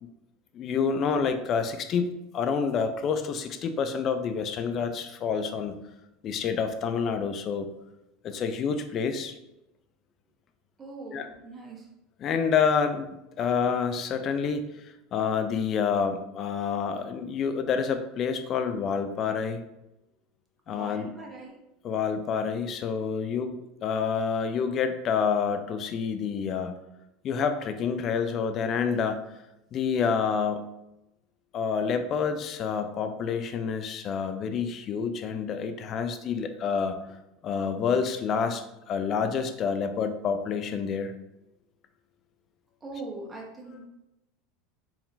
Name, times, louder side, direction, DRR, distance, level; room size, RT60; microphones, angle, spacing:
voice 1, 0.5-5.8 6.2-7.7 8.2-9.3 11.1-11.3 12.2-14.7 15.1-19.6 20.7-21.1 21.8-26.8 27.2-29.3 29.7-30.7 31.5-37.0 37.4-41.1, left 6 dB, 40° left, 9 dB, 0.5 m, -28 dB
voice 2, 10.8-11.9 20.7-21.5 42.8-43.8, right 2 dB, 20° right, -1 dB, 1.1 m, -41 dB
4.7 x 3.5 x 2.6 m, 0.91 s
supercardioid pair, 120°, 0 cm